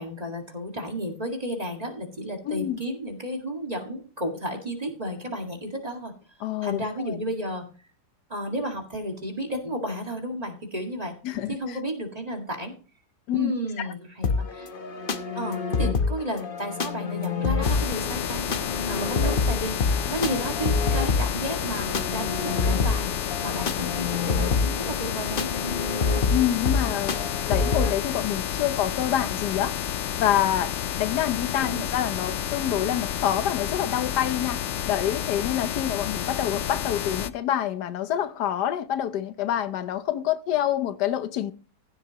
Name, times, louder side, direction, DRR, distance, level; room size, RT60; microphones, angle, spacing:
voice 1, 0.0-6.1 6.6-7.6 8.3-11.1 11.5-12.7 13.3-14.7 15.4-18.6 18.9-23.2 23.4-25.8 31.6-31.9, equal, 25° right, 2.0 m, -32 dB
voice 2, 2.4-2.8 6.4-7.2 11.2-11.8 13.3-13.5 13.8-13.9 19.2-19.3 26.3-29.7 30.2-30.7 31.0-34.6 34.9-41.5, left 11 dB, 90° left, 1.4 m, -27 dB
sound 1, 14.2-27.9, left 4 dB, 40° left, 0.9 m, -27 dB
sound 2, 17.6-37.3, left 10 dB, 65° left, 0.7 m, -30 dB
15.5 x 8.0 x 2.9 m
omnidirectional pair, 1.7 m